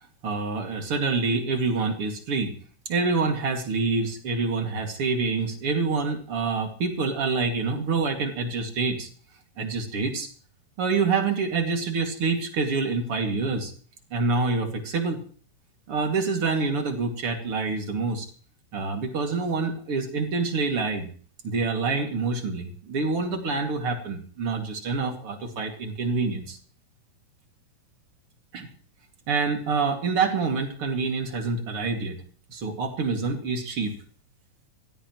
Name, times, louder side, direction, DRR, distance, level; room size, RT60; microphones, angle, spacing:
voice 1, 0.2-2.5 2.9-9.1 9.6-10.3 10.8-13.7 14.1-15.2 15.9-18.3 18.7-21.1 21.4-26.6 28.5-28.7 29.3-32.2 32.5-33.9, right 4 dB, 45° right, 4 dB, 3.2 m, -26 dB
24.0 x 16.5 x 3.1 m, 0.43 s
omnidirectional pair, 3.7 m